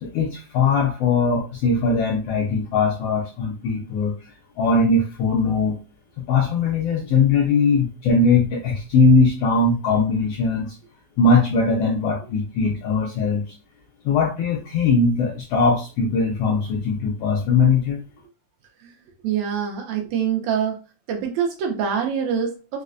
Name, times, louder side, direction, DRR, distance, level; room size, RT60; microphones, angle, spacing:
voice 1, 0.0-4.2 4.6-5.8 6.3-10.7 11.2-13.5 14.0-18.0, left 4 dB, 80° left, -1 dB, 1.4 m, -20 dB
voice 2, 19.2-20.8 21.1-22.8, right 7 dB, 75° right, 2 dB, 1.8 m, -25 dB
4.7 x 2.1 x 2.4 m, 0.32 s
omnidirectional pair, 3.4 m